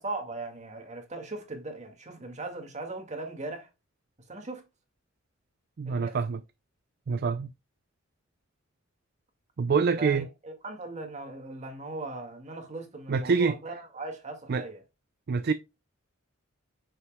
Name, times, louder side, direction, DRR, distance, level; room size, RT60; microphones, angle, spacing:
voice 1, 0.0-3.7 4.3-4.7 5.9-6.2 10.0-14.8, right 2 dB, 35° right, 2.0 m, -39 dB
voice 2, 5.8-6.4 7.1-7.5 9.6-10.3 13.1-13.5 14.5-14.6 15.3-15.5, right 5 dB, 50° right, 0.4 m, -25 dB
7.6 x 6.4 x 2.2 m
head